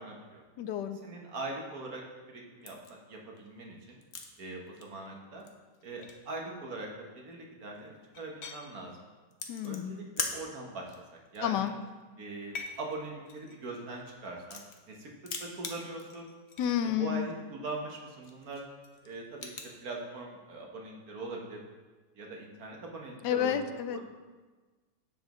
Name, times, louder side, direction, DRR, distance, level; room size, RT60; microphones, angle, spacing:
voice 1, 0.0-0.4 1.0-2.0 2.3-4.0 4.4-5.4 5.8-6.9 7.1-8.9 9.6-10.9 11.3-11.7 12.2-15.1 15.4-16.3 17.0-18.6 19.0-19.5 19.8-21.6 22.2-23.6 23.9-24.0, right 2 dB, 60° right, 0 dB, 1.6 m, -41 dB
voice 2, 0.6-1.0 9.5-10.0 11.4-11.7 16.6-17.3 23.2-24.0, left 10 dB, 80° left, 9 dB, 1.2 m, -30 dB
sound 1, 2.6-2.9 3.4-4.4 4.7-5.1 5.4-5.5 5.7-6.3 7.3-7.4 7.7-8.6 9.3-10.4 10.7-11.0 11.2-11.9 12.3-15.0 15.2-16.9 17.1-17.2 17.6-17.9 18.2-19.7, left 4 dB, 50° left, 0.9 m, -41 dB
10.5 x 7.5 x 3.1 m, 1.3 s
omnidirectional pair, 1.8 m